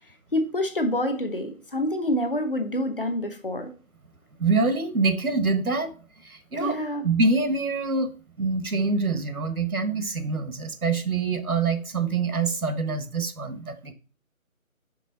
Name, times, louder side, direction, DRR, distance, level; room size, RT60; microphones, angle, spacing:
voice 1, 0.3-3.7 6.6-7.1, left 1 dB, 40° left, 1.0 m, -27 dB
voice 2, 4.4-5.9 6.2-8.1 8.4-13.9, right 4 dB, 90° right, 1.2 m, -25 dB
5.7 x 5.4 x 3.9 m
figure-of-eight pair, 165°, 42 cm